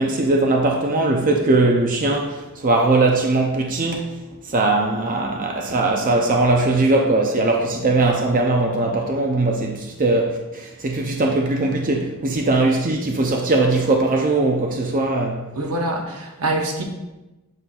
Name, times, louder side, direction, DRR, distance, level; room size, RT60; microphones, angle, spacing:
voice 1, 0.0-4.1 4.5-15.4, right 2 dB, 40° right, 1 dB, 0.6 m, -20 dB
voice 2, 15.6-16.8, right 1 dB, 80° right, 2 dB, 1.0 m, -24 dB
7.9 x 5.7 x 2.4 m, 1.1 s
head